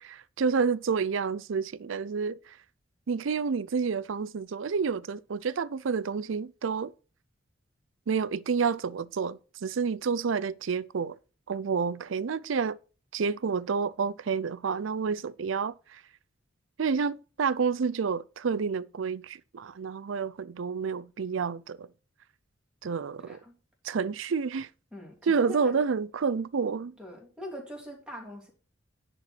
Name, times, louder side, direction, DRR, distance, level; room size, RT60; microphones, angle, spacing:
voice 1, 0.0-2.6 3.1-6.9 8.1-11.2 11.5-12.8 13.1-16.0 16.8-21.9 22.8-23.4 23.8-24.7 25.3-26.9, right 5 dB, 80° right, 0.5 m, -29 dB
voice 2, 23.2-23.5 24.9-25.8 27.0-28.5, equal, 5° right, 3.2 m, -42 dB
10.5 x 4.6 x 6.2 m
head